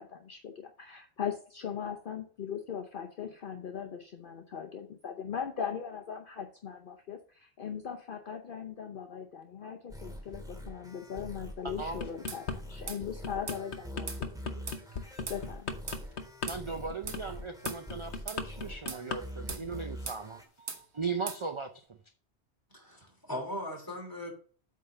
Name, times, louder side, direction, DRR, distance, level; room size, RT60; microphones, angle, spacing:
voice 1, 0.0-14.6 15.0-15.7, left 7 dB, 55° left, 5 dB, 0.9 m, -39 dB
sound 1, 9.9-20.4, equal, 5° right, 1.8 m, -44 dB
voice 2, 11.6-12.0 16.5-21.7, right 4 dB, 35° right, 6 dB, 0.6 m, -38 dB
sound 2, 11.8-12.6 13.0-19.2 19.5-19.8, left 5 dB, 75° left, 1.2 m, -37 dB
sound 3, 12.3-12.4 12.9-13.0 13.5-13.6 14.1-14.2 14.7-14.8 15.3-15.4 15.9-16.0 16.5-16.6 17.1-17.2 17.6-17.8 18.3-18.4 18.9-19.0 19.5-19.7 20.1-20.2 20.7-20.8 21.3-21.4, right 5 dB, 80° right, 1.4 m, -40 dB
voice 3, 22.7-24.3, left 1 dB, 20° left, 0 dB, 2.9 m, -39 dB
8.4 x 3.8 x 6.5 m, 0.41 s
omnidirectional pair, 1.1 m